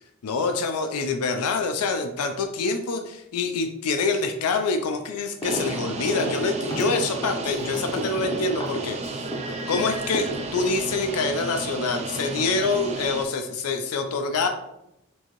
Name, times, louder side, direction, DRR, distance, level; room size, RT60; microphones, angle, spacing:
voice 1, 0.2-9.3 9.7-14.5, left 3 dB, 85° left, 6 dB, 0.4 m, -26 dB
sound 1, 5.4-5.7 6.0-9.8 10.1-11.0, equal, 20° left, 0.6 m, -31 dB
sound 2, 5.4-13.2, right 3 dB, 30° right, 0.3 m, -33 dB
4.5 x 2.7 x 3.0 m, 0.85 s
head